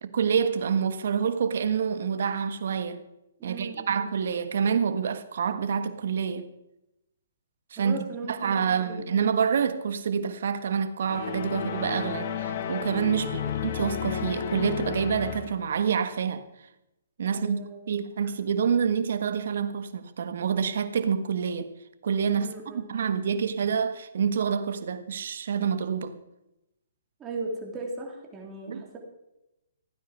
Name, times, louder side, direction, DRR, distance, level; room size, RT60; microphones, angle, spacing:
voice 1, 0.0-3.0 3.4-6.5 7.7-8.0 8.3-16.4 17.2-21.7 22.0-26.2 28.7-28.8, right 7 dB, 65° right, 1.4 m, -27 dB
voice 2, 3.4-4.0 7.8-9.1 13.2-13.5 17.3-17.9 22.4-22.9 27.2-29.0, right 3 dB, 15° right, 3.3 m, -38 dB
sound 1, 11.1-15.7, left 8 dB, 45° left, 1.4 m, -32 dB
15.5 x 9.5 x 6.2 m
hypercardioid pair, 145°, 0 cm